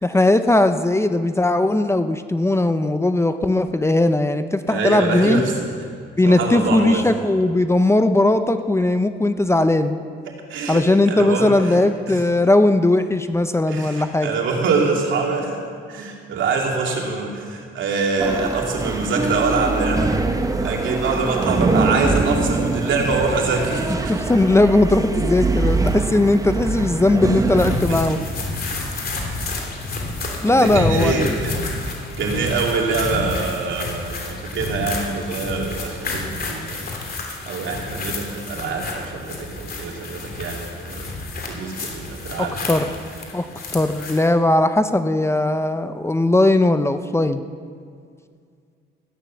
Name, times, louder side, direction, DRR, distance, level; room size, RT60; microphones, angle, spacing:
voice 1, 0.0-5.4 6.2-10.0 10.7-14.3 24.1-28.2 30.4-31.4 42.4-42.9 43.3-43.5 43.7-47.4, left 2 dB, 15° left, 9 dB, 0.7 m, -18 dB
voice 2, 4.7-5.7 6.2-7.1 10.3-10.8 11.1-11.8 12.1-12.2 13.7-15.6 15.9-20.2 20.6-24.2 27.9-28.2 28.7-28.8 29.0-29.4 30.5-31.6 32.2-36.9 37.5-41.0 41.5-42.8, right 4 dB, 75° right, 0 dB, 2.7 m, -24 dB
sound 1, 18.2-27.8, right 3 dB, 15° right, 1.0 m, -23 dB
sound 2, 27.6-44.3, left 2 dB, 50° left, 3.1 m, -30 dB
15.0 x 9.8 x 7.1 m, 2.2 s
cardioid pair, 90°, 20 cm